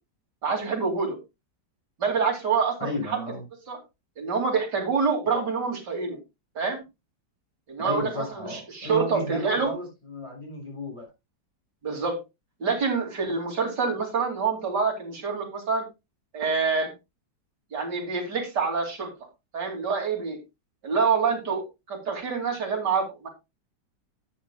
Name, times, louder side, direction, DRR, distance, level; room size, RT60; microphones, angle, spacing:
voice 1, 0.4-1.2 2.0-3.2 3.7-3.8 4.2-6.2 6.5-6.8 7.7-9.7 11.8-12.2 12.6-15.8 16.3-16.9 17.7-19.1 19.5-20.4 20.8-23.3, right 5 dB, 70° right, 2 dB, 3.3 m, -26 dB
voice 2, 2.8-3.4 7.8-11.1, left 1 dB, 15° left, -1 dB, 5.7 m, -33 dB
13.0 x 8.9 x 2.3 m, 0.24 s
omnidirectional pair, 1.9 m